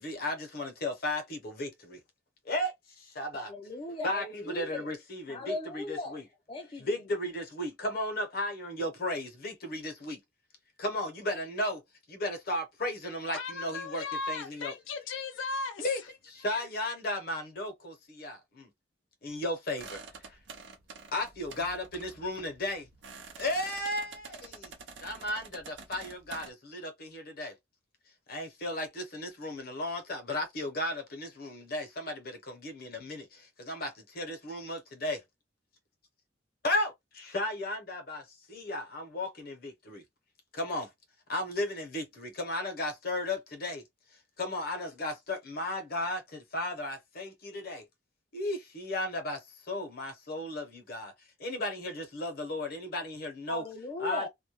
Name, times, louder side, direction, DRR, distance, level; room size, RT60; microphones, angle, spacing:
voice 1, 0.0-2.0 2.5-3.5 4.0-6.2 6.8-10.2 10.8-11.8 12.1-14.7 15.8-18.7 19.2-20.4 21.1-22.9 23.4-24.7 25.0-27.5 28.3-35.2 36.6-36.9 37.3-40.0 40.5-40.9 41.3-43.8 44.4-47.8 48.3-51.1 51.4-53.6 54.0-54.2, left 1 dB, 50° left, 0.8 m, -35 dB
voice 2, 3.5-4.9 5.3-6.2 6.5-7.1 53.5-54.3, left 2 dB, 25° left, 0.4 m, -38 dB
voice 3, 13.3-15.9, left 3 dB, 85° left, 0.5 m, -36 dB
sound 1, 19.8-26.5, right 4 dB, 75° right, 0.7 m, -48 dB
2.2 x 2.1 x 2.9 m
head